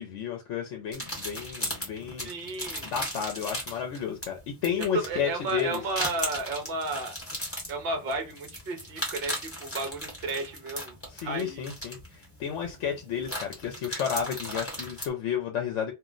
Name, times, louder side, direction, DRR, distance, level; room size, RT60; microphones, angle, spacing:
voice 1, 0.0-2.3 2.8-5.8 11.1-15.9, left 8 dB, 75° left, 0.9 m, -32 dB
sound 1, 0.9-15.1, equal, 10° left, 0.9 m, -38 dB
voice 2, 2.2-2.9 4.9-7.1 7.7-11.6, right 3 dB, 55° right, 0.8 m, -33 dB
2.4 x 2.0 x 3.6 m
omnidirectional pair, 1.2 m